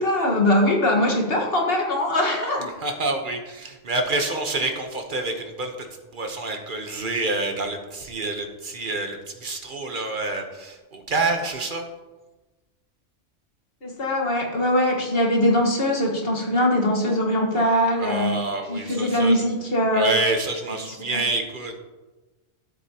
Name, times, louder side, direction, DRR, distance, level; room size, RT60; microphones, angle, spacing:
voice 1, 0.0-2.7 13.8-18.4 18.7-20.1 20.9-21.2, left 1 dB, 50° left, 0 dB, 1.7 m, -22 dB
voice 2, 2.8-5.9 6.1-11.9 18.0-19.4 19.9-21.8, right 2 dB, 45° right, 4 dB, 1.1 m, -27 dB
12.5 x 7.7 x 2.9 m, 1.2 s
omnidirectional pair, 1.2 m